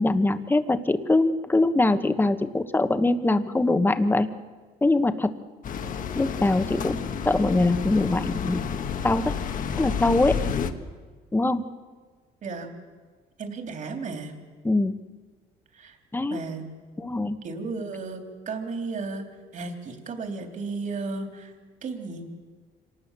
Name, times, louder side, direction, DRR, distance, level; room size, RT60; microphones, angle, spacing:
voice 1, 0.0-4.3 4.8-5.3 6.1-8.6 9.0-9.3 9.8-10.4 11.3-11.6 14.6-14.9 16.1-16.4 17.0-17.4, left 2 dB, 10° left, 10 dB, 1.3 m, -23 dB
sound 1, 5.6-10.7, left 7 dB, 50° left, 1.5 m, -30 dB
voice 2, 12.4-12.7 13.4-14.4 15.7-16.0 16.3-16.7 17.4-19.3 19.5-21.5 21.8-22.2, right 4 dB, 50° right, 4 dB, 3.6 m, -34 dB
26.0 x 19.0 x 7.5 m, 1.5 s
cardioid pair, 110°, 17 cm